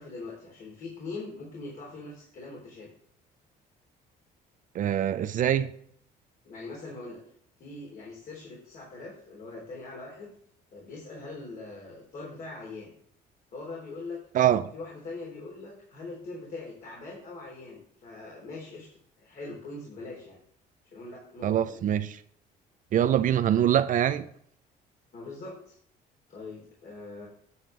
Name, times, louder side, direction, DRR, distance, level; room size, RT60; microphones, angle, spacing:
voice 1, 0.0-2.9 6.5-7.2 7.6-10.3 10.7-12.9 13.5-14.2 14.7-18.9 19.2-20.4 20.8-21.8 23.5-23.7 25.1-25.8 26.3-27.3, left 3 dB, 55° left, 3.5 m, -42 dB
voice 2, 4.7-5.7 14.3-14.7 21.4-22.2 22.9-24.3, right 10 dB, 50° right, 0.5 m, -24 dB
9.5 x 7.2 x 3.2 m
cardioid pair, 110°, 17 cm